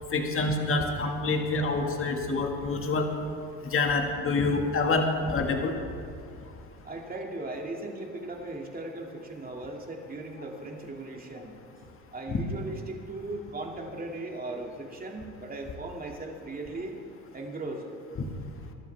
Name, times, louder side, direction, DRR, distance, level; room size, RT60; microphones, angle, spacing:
voice 1, 0.1-3.1 3.7-5.7 12.3-12.4, left 3 dB, 35° left, 3 dB, 1.9 m, -27 dB
voice 2, 6.8-11.5 12.1-16.9 17.3-18.0, right 2 dB, 25° right, 1 dB, 2.4 m, -38 dB
23.0 x 11.5 x 3.5 m, 2.3 s
supercardioid pair, 85°, 35 cm